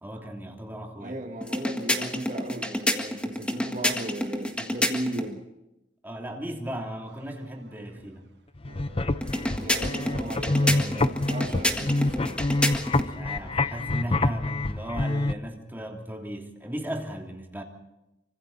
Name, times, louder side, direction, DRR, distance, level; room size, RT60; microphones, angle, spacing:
voice 1, 0.0-1.2 6.0-8.3 13.0-17.6, right 1 dB, 10° right, 1 dB, 3.0 m, -36 dB
voice 2, 1.0-5.5 9.6-12.4, right 1 dB, 45° right, 4 dB, 1.9 m, -36 dB
sound 1, 1.4-5.3 9.2-13.1, left 1 dB, 5° left, 1.7 m, -29 dB
sound 2, 7.1-8.3 8.7-13.8, right 2 dB, 75° right, 6.1 m, -52 dB
sound 3, 8.6-15.3, left 2 dB, 30° left, 0.7 m, -27 dB
27.5 x 25.5 x 4.1 m, 0.95 s
head